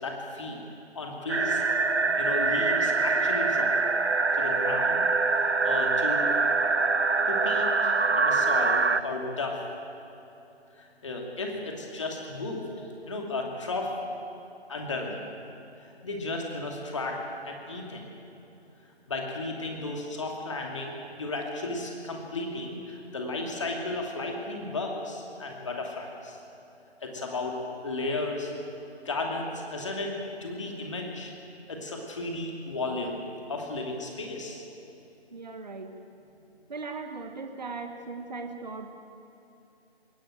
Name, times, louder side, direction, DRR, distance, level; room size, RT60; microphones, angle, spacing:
voice 1, 0.0-0.6 0.9-1.6 2.2-3.7 4.3-5.0 5.6-6.3 7.3-9.6 10.8-12.6 13.1-13.9 14.7-15.2 16.0-17.2 17.5-18.1 19.1-26.4 27.0-27.6 27.8-28.5 29.0-30.1 30.4-31.3 31.7-33.2 33.5-34.6, left 2 dB, 30° left, 1 dB, 2.6 m, -34 dB
sound 1, 1.3-9.0, right 3 dB, 90° right, 0.9 m, -24 dB
voice 2, 35.3-36.0 36.7-38.9, right 4 dB, 40° right, 6 dB, 1.4 m, -38 dB
20.5 x 16.5 x 9.0 m, 2.9 s
figure-of-eight pair, 160°, 33 cm